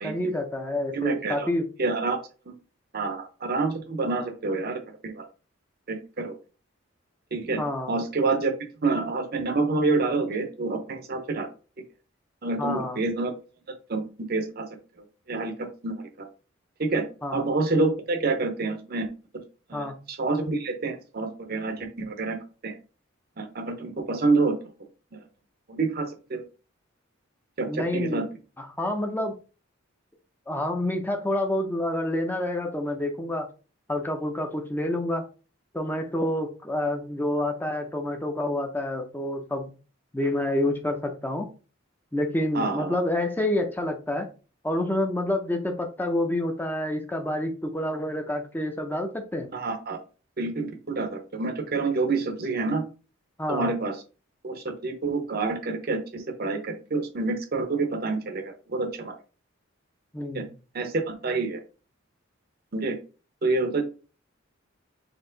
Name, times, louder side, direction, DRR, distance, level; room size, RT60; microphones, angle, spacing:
voice 1, 0.0-1.7 7.6-8.0 12.6-13.0 17.2-17.4 19.7-19.9 27.7-28.2 28.6-29.4 30.5-33.5 33.9-35.3 35.7-39.7 40.1-41.5 42.1-44.3 44.6-49.5 53.4-53.7 60.1-60.5, left 1 dB, 10° left, 3 dB, 0.5 m, -28 dB
voice 2, 0.9-1.5 1.8-2.2 2.5-2.6 2.9-5.2 5.9-6.3 7.3-7.6 7.9-8.5 8.8-11.5 12.4-13.3 13.9-14.0 14.3-14.7 15.3-16.3 16.8-17.0 17.3-19.1 19.3-19.4 19.7-22.4 22.6-22.7 23.4-24.6 25.1-25.2 25.7-26.4 27.6-28.2 42.5-43.0 49.5-50.0 50.4-52.8 53.5-54.0 54.4-59.1 60.3-60.4 60.7-61.6 62.7-63.0 63.4-63.8, right 3 dB, 50° right, 5 dB, 0.7 m, -27 dB
4.4 x 2.8 x 3.8 m, 0.34 s
head